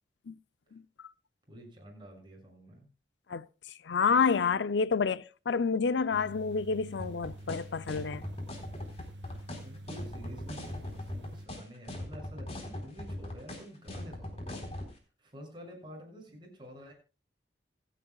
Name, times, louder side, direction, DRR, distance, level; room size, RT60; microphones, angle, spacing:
voice 1, 1.5-2.9 9.6-16.9, equal, 25° right, 6.6 m, -49 dB
voice 2, 3.8-8.2, left 5 dB, 80° left, 0.5 m, -28 dB
sound 1, 6.1-11.5, right 1 dB, 90° right, 1.5 m, -47 dB
sound 2, 7.0-14.9, left 1 dB, 35° left, 4.0 m, -40 dB
26.5 x 9.0 x 2.3 m
head